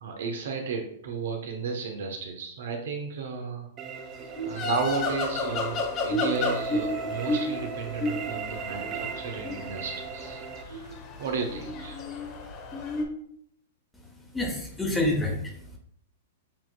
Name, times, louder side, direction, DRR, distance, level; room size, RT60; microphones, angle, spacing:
voice 1, 0.0-3.7 4.4-12.0, right 5 dB, 65° right, 3 dB, 0.8 m, -33 dB
sound 1, 3.8-10.6, right 5 dB, 35° right, 0.5 m, -38 dB
sound 2, 4.2-13.0, left 2 dB, 35° left, 0.9 m, -32 dB
voice 2, 14.3-15.8, left 1 dB, 10° left, 0 dB, 1.2 m, -28 dB
7.3 x 2.9 x 2.2 m, 0.69 s
hypercardioid pair, 110°, 0 cm